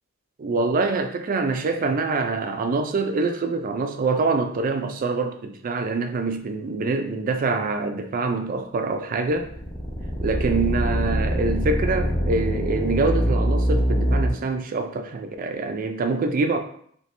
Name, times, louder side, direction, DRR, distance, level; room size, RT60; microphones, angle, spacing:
voice 1, 0.4-9.5 10.2-16.6, right 3 dB, 40° right, 0.4 m, -25 dB
sound 1, 9.3-14.3, equal, 20° left, 0.8 m, -23 dB
2.9 x 2.9 x 3.2 m
head